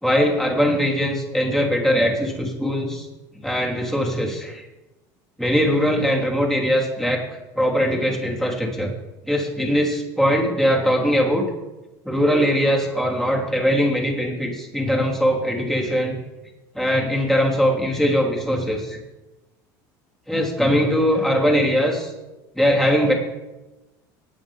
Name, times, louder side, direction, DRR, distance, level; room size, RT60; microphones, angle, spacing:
voice 1, 0.0-3.1 3.4-4.6 5.4-7.2 7.6-8.9 9.3-11.5 12.0-16.2 16.7-19.0 20.3-22.1 22.6-23.1, equal, 5° left, -2 dB, 3.2 m, -21 dB
19.5 x 8.3 x 3.6 m, 1.0 s
supercardioid pair, 115°, 9 cm